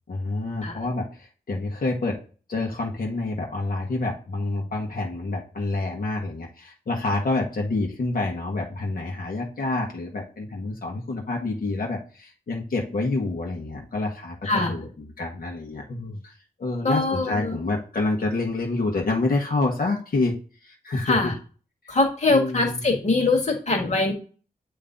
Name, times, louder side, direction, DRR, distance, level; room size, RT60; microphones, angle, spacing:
voice 1, 0.1-2.2 2.5-20.4 20.6-21.3 21.8-22.0 22.3-22.8, left 2 dB, 70° left, 0 dB, 1.4 m, -28 dB
voice 2, 16.8-17.5 21.1-21.3 21.9-24.1, left 3 dB, 50° left, 2 dB, 1.8 m, -22 dB
8.4 x 3.1 x 3.9 m, 0.38 s
wide cardioid pair, 150°, 16 cm